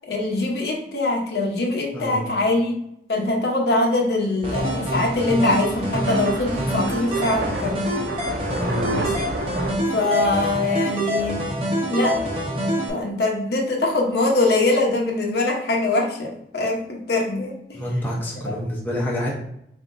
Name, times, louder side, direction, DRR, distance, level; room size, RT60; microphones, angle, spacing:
voice 1, 0.1-2.7 3.1-7.8 8.9-9.3 9.9-11.4 11.9-12.2 12.9-17.5 18.4-18.6, left 2 dB, 65° left, 0 dB, 0.9 m, -23 dB
voice 2, 1.9-2.2 8.5-8.9 17.7-19.3, left 1 dB, 10° left, -4 dB, 0.7 m, -27 dB
sound 1, 4.4-12.9, equal, 30° right, 1.0 m, -26 dB
sound 2, 4.5-9.7, right 2 dB, 75° right, 0.5 m, -31 dB
4.2 x 3.6 x 2.6 m, 0.76 s
head